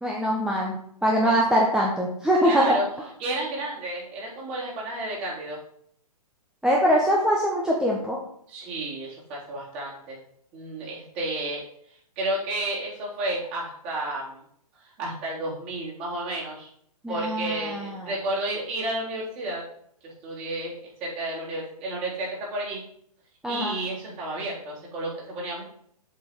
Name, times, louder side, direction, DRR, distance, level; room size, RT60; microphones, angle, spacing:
voice 1, 0.0-2.8 6.6-8.2 17.0-18.1 23.4-23.8, equal, 5° right, -3 dB, 0.9 m, -23 dB
voice 2, 2.4-2.8 3.2-5.6 8.5-10.2 10.5-11.6 12.2-14.4 14.8-16.7 17.1-19.6 20.0-20.8 21.0-22.8 23.5-25.6, right 1 dB, 30° right, -4 dB, 3.5 m, -31 dB
7.1 x 5.5 x 4.6 m, 0.67 s
hypercardioid pair, 130°, 20 cm